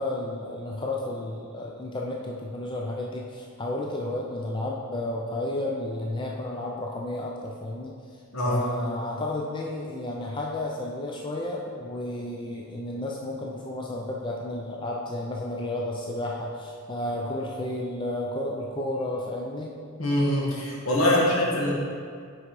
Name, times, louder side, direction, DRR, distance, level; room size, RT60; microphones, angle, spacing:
voice 1, 0.0-7.9 8.5-19.7 21.1-21.4, left 1 dB, 20° left, -1 dB, 0.4 m, -32 dB
voice 2, 8.3-8.7 20.0-21.7, left 1 dB, 70° left, -3 dB, 1.4 m, -23 dB
6.1 x 4.7 x 4.7 m, 2.1 s
head